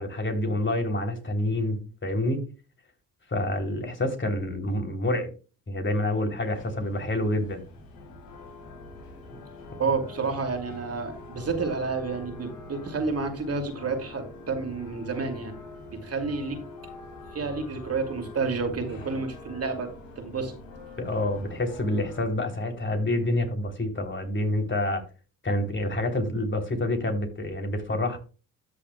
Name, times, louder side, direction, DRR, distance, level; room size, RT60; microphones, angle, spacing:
voice 1, 0.0-2.4 3.3-5.3 5.7-7.6 21.0-25.0 25.4-28.2, left 1 dB, 30° left, 4 dB, 3.3 m, -27 dB
sound 1, 6.4-22.2, left 2 dB, 70° left, 3.9 m, -45 dB
voice 2, 9.8-15.6 15.9-16.6 17.3-19.9 20.2-20.6, right 4 dB, 40° right, 5 dB, 2.5 m, -30 dB
13.0 x 6.9 x 2.3 m, 0.33 s
hypercardioid pair, 55°, 36 cm